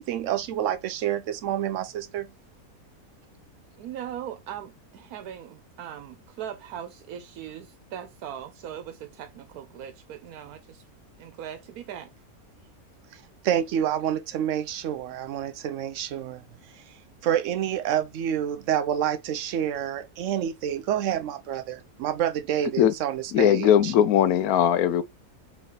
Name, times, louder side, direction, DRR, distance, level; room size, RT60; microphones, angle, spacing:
voice 1, 0.0-2.3 13.4-16.4 17.2-23.9, right 10 dB, 70° right, 0.8 m, -28 dB
voice 2, 3.8-10.9 11.2-12.1, right 10 dB, 90° right, 1.2 m, -39 dB
voice 3, 23.3-25.0, left 10 dB, 80° left, 1.1 m, -19 dB
5.1 x 3.0 x 3.0 m
omnidirectional pair, 1.5 m